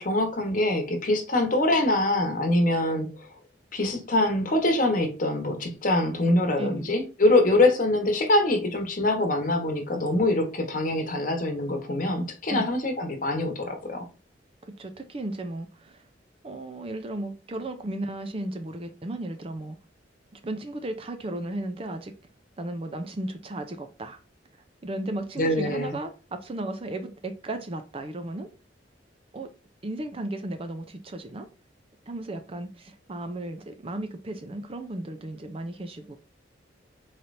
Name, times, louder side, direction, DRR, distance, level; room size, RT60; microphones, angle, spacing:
voice 1, 0.0-3.3 3.7-14.1 25.4-26.0, left 1 dB, 45° left, 1.1 m, -24 dB
voice 2, 6.6-6.9 12.5-12.7 14.6-16.1 16.4-19.8 20.3-22.1 22.6-24.2 24.8-28.5 29.3-29.5 29.8-31.5 32.1-36.2, right 1 dB, 30° right, 0.4 m, -35 dB
4.2 x 3.3 x 2.6 m
head